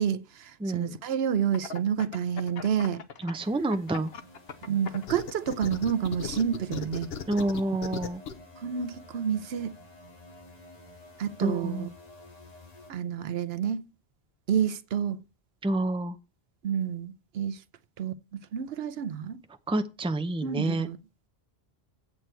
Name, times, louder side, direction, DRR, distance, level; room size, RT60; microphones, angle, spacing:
voice 1, 0.0-3.0 4.7-7.1 8.6-9.7 11.2-11.9 12.9-13.9 14.5-15.2 16.6-17.6 18.0-19.4 20.4-21.0, right 8 dB, 75° right, 0.9 m, -29 dB
voice 2, 0.6-1.0 3.2-4.1 7.3-8.2 11.4-11.9 15.6-16.2 19.7-20.9, right 2 dB, 5° right, 0.5 m, -28 dB
sound 1, 1.5-3.3 3.7-8.3, left 6 dB, 75° left, 1.1 m, -36 dB
sound 2, 3.4-12.9, left 2 dB, 40° left, 2.4 m, -52 dB
8.5 x 8.1 x 4.4 m
omnidirectional pair, 1.1 m